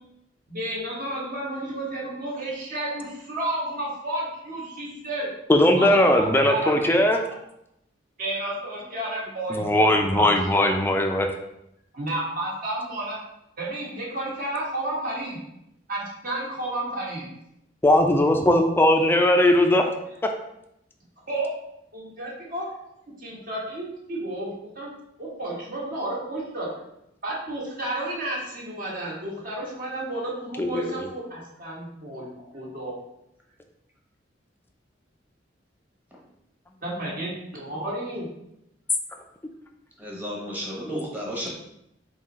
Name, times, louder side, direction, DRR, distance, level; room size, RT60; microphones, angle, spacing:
voice 1, 0.5-5.3 5.7-6.8 8.2-10.3 11.9-13.2 13.6-15.4 15.9-17.2 21.3-21.5 21.9-22.7 23.2-24.9 25.2-26.7 27.2-32.9 36.8-38.3, right 1 dB, 50° right, -4 dB, 1.3 m, -31 dB
voice 2, 5.5-7.2 9.5-11.3 17.8-19.9 30.6-31.1 40.8-41.0, left 1 dB, 10° left, 4 dB, 0.4 m, -19 dB
voice 3, 40.0-41.5, equal, 10° right, -4 dB, 1.0 m, -32 dB
3.8 x 2.7 x 4.1 m, 0.81 s
head